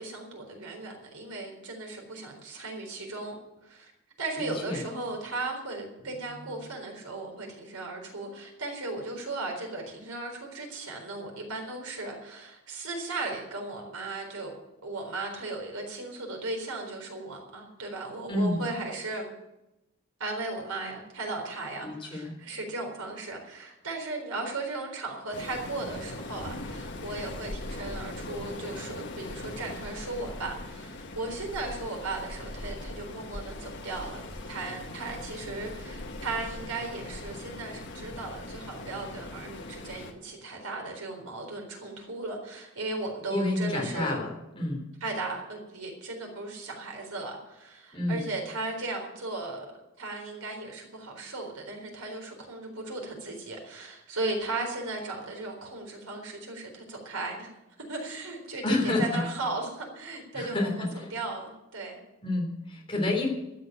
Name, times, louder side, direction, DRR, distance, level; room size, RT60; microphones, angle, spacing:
voice 1, 0.0-3.4 3.6-3.9 4.2-14.6 14.8-19.3 20.2-44.2 45.0-49.7 50.0-57.5 57.9-62.0, right 2 dB, 85° right, 2 dB, 4.1 m, -36 dB
voice 2, 4.4-4.8 6.1-6.6 18.3-18.6 21.8-22.3 43.3-44.9 47.9-48.2 58.6-59.2 60.3-61.1 62.2-63.3, left 2 dB, 25° left, 0 dB, 3.4 m, -29 dB
Waves surf, 25.3-40.1, left 2 dB, 55° left, 1.5 m, -40 dB
13.0 x 8.2 x 9.0 m, 0.95 s
head